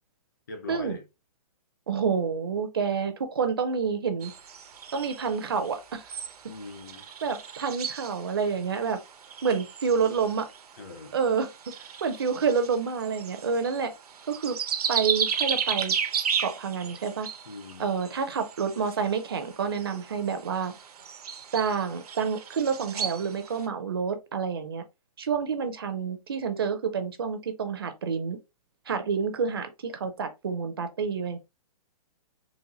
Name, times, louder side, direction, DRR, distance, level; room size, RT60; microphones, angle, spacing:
voice 1, 0.5-1.0 6.5-7.0 10.8-11.1 17.5-17.9, left 3 dB, 30° left, 0.5 m, -41 dB
voice 2, 1.9-4.3 4.9-6.0 7.2-9.0 9.4-10.5 11.1-11.5 12.0-13.9 14.3-14.6 14.9-15.9 16.4-17.3 17.8-20.7 21.5-24.8 25.2-28.4 28.9-31.4, right 6 dB, 40° right, 0.5 m, -28 dB
sound 1, 4.2-23.7, right 7 dB, 80° right, 0.7 m, -35 dB
4.0 x 2.1 x 2.7 m
hypercardioid pair, 180°, 19 cm